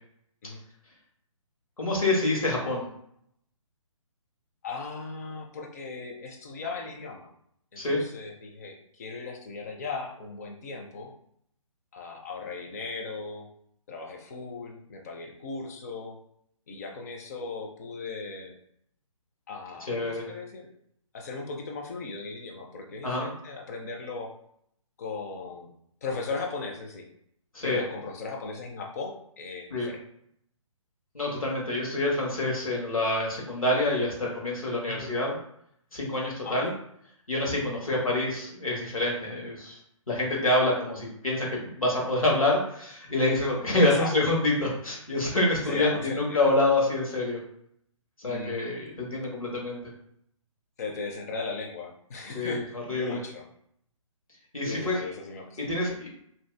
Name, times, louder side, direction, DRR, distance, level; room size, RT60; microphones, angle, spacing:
voice 1, 1.8-2.8 7.8-8.0 19.8-20.3 23.0-23.3 27.5-27.8 29.7-29.9 31.1-35.4 35.9-36.7 37.3-39.8 40.1-47.4 48.2-49.8 52.3-53.2 54.5-55.0 55.6-56.1, left 2 dB, 85° left, -3 dB, 1.3 m, -27 dB
voice 2, 4.6-7.3 7.7-11.1 11.9-13.5 13.9-16.2 16.7-18.5 19.5-20.7 21.1-24.3 25.0-25.7 26.0-27.1 27.6-30.0 34.9-35.1 36.4-36.8 37.9-38.1 43.7-44.1 45.6-46.5 48.2-48.8 50.8-53.5 54.6-55.6, left 4 dB, 30° left, 1 dB, 0.4 m, -37 dB
2.7 x 2.3 x 3.2 m, 0.71 s
figure-of-eight pair, 140°, 17 cm